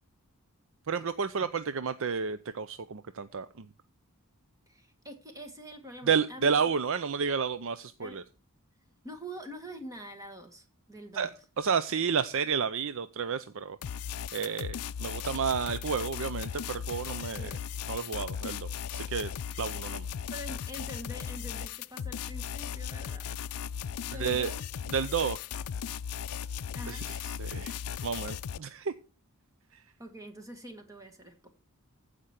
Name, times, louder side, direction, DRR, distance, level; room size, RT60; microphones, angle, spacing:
voice 1, 0.9-3.7 6.0-8.2 11.1-11.3 11.6-13.8 14.3-17.6 17.9-20.1 24.1-24.5 24.9-25.4 26.9-28.9 29.7-29.8, right 6 dB, 60° right, 13 dB, 0.5 m, -31 dB
voice 2, 4.7-6.5 8.0-8.2 9.0-11.3 17.4-17.6 20.3-23.3 24.0-24.6 26.7-27.1 30.0-31.5, equal, 15° right, 6 dB, 1.7 m, -45 dB
sound 1, 13.8-28.6, left 8 dB, 80° left, 0.4 m, -37 dB
15.0 x 5.1 x 5.8 m, 0.35 s
head